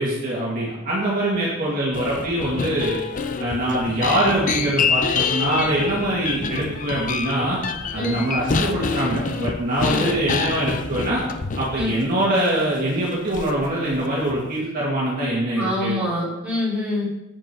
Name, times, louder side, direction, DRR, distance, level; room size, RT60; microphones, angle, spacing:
voice 1, 0.0-3.0 3.4-7.6 7.9-11.2 11.6-15.9, right 1 dB, 40° right, -6 dB, 2.0 m, -23 dB
sound 1, 1.9-12.0 12.4-12.5 13.3-13.7 13.9-14.4, left 5 dB, 35° left, 0.5 m, -27 dB
voice 2, 15.6-17.1, left 1 dB, 5° right, -9 dB, 3.9 m, -25 dB
8.5 x 7.6 x 4.8 m, 0.96 s
head